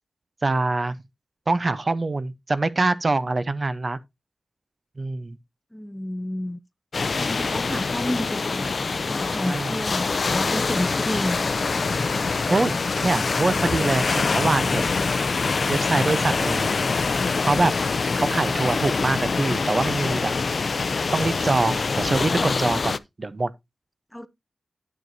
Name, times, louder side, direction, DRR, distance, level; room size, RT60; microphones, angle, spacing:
voice 1, 0.4-1.0 1.5-4.0 5.0-5.4 9.4-9.7 12.0-15.0 15.7-16.7 17.4-17.7 18.2-20.4 21.1-23.5, right 3 dB, 40° right, 0.6 m, -24 dB
voice 2, 5.7-6.6 7.2-11.5 24.1-24.3, left 1 dB, 10° left, 0.5 m, -30 dB
sound 1, 6.9-23.0, left 4 dB, 60° left, 0.4 m, -24 dB
9.2 x 7.8 x 2.6 m
wide cardioid pair, 95°, 0 cm